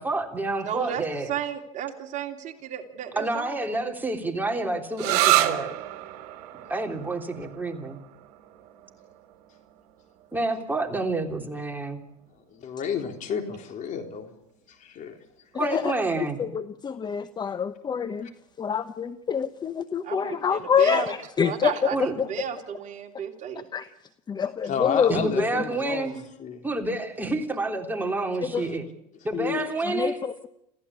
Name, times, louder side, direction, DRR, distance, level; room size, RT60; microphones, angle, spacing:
voice 1, 0.0-1.3 3.2-5.7 6.7-8.0 10.3-12.0 15.6-16.4 21.9-22.2 25.1-26.1 26.6-28.8 29.2-30.2, right 2 dB, 10° right, 3 dB, 3.4 m, -28 dB
voice 2, 0.6-1.0 1.3-3.5 20.0-21.1 21.4-22.0 22.3-23.7, right 9 dB, 40° right, 4 dB, 3.1 m, -33 dB
sound 1, 5.0-12.4, right 15 dB, 65° right, 2.2 m, -30 dB
voice 3, 12.5-14.3 14.7-15.2 24.7-26.7 28.5-28.7, left 7 dB, 40° left, 4 dB, 3.8 m, -32 dB
voice 4, 15.5-18.3 18.6-21.9 22.2-22.3 23.7-23.9 24.3-25.5 28.4-28.6 29.3-30.5, left 7 dB, 20° left, 12 dB, 1.0 m, -27 dB
27.5 x 15.5 x 8.5 m, 0.82 s
supercardioid pair, 105°, 19 cm